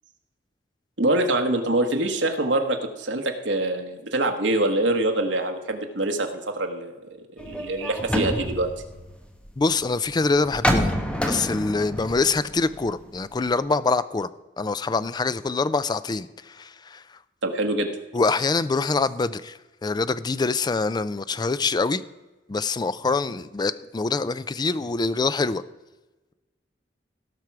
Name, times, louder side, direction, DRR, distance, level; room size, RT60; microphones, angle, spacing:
voice 1, 1.0-7.0 7.4-8.7 17.4-17.9, right 2 dB, 80° right, 4 dB, 1.3 m, -24 dB
sound 1, 7.4-9.6 10.4-13.3 13.6-13.7, equal, 5° left, 1.1 m, -27 dB
voice 2, 9.6-14.3 14.6-17.2 18.1-22.0 22.5-25.6, left 3 dB, 25° left, 15 dB, 0.4 m, -25 dB
17.5 x 6.0 x 4.7 m, 1.1 s
head